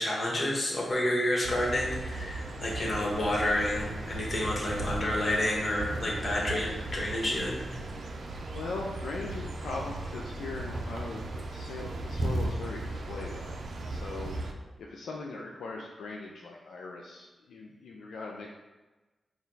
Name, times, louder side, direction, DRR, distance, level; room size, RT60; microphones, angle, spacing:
voice 1, 0.0-7.6, left 1 dB, 50° left, -3 dB, 1.3 m, -29 dB
sound 1, 1.4-14.5, right 2 dB, 70° right, 0.4 m, -36 dB
voice 2, 8.5-18.5, left 3 dB, 85° left, -2 dB, 0.3 m, -40 dB
4.3 x 2.3 x 3.8 m, 1.2 s
cardioid pair, 45°, 0 cm